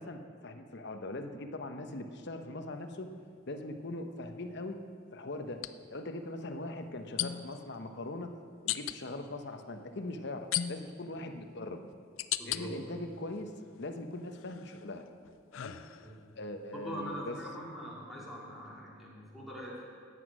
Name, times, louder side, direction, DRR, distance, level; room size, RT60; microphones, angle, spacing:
voice 1, 0.0-3.1 3.5-4.8 5.1-8.4 8.6-11.8 12.4-15.1 15.5-15.7 16.4-17.4, left 2 dB, 60° left, 6 dB, 0.9 m, -41 dB
sound 1, 2.7-2.9 5.5-5.7 7.2-7.6 8.7-9.0 10.5-11.1 11.7-12.6 13.2-13.8 14.3-16.3, left 12 dB, 80° left, 0.4 m, -36 dB
voice 2, 12.4-12.7 16.0-16.1 16.7-19.9, equal, ahead, -6 dB, 3.1 m, -43 dB
14.0 x 9.4 x 6.3 m, 2.2 s
head